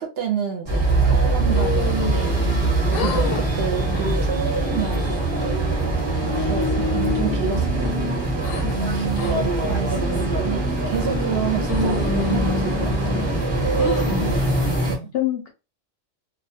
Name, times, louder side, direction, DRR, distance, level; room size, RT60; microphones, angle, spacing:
voice 1, 0.0-5.7 6.4-8.1 8.9-13.0 14.9-15.1, right 7 dB, 60° right, 2 dB, 0.7 m, -30 dB
sound 1, 0.7-15.0, right 2 dB, 25° right, 0.7 m, -22 dB
sound 2, 1.5-2.6 2.9-3.4 3.8-4.2 4.7-5.2 5.8-6.5 6.9-8.6 9.1-9.3 9.9-10.3 10.9-11.4 11.7-13.3 13.8-14.4, left 4 dB, 90° left, 1.0 m, -30 dB
voice 2, 3.0-3.4 8.6-9.7 14.2-14.8 15.1-15.5, left 3 dB, 65° left, 4 dB, 0.7 m, -28 dB
2.3 x 2.1 x 2.6 m, 0.28 s
omnidirectional pair, 1.3 m